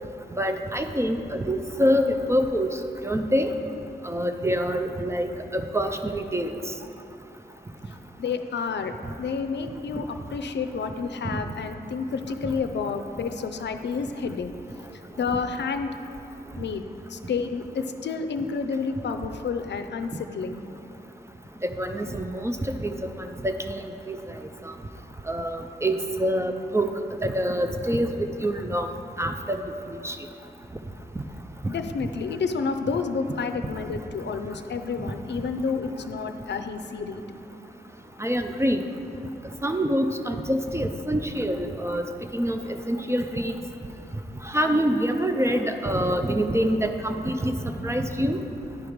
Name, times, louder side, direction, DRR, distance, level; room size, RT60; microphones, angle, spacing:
voice 1, 0.4-2.7 3.0-3.5 4.0-6.6 11.2-11.4 12.4-12.5 21.8-24.2 25.3-26.9 27.2-28.9 29.2-29.6 29.9-30.2 38.2-38.9 39.6-42.1 42.3-43.6 44.4-48.4, equal, 15° right, 6 dB, 0.3 m, -26 dB
voice 2, 8.2-14.5 14.9-15.9 16.6-16.8 17.1-20.7 31.7-37.2, left 5 dB, 75° left, 8 dB, 0.5 m, -30 dB
10.5 x 4.6 x 5.1 m, 2.8 s
wide cardioid pair, 165°, 18 cm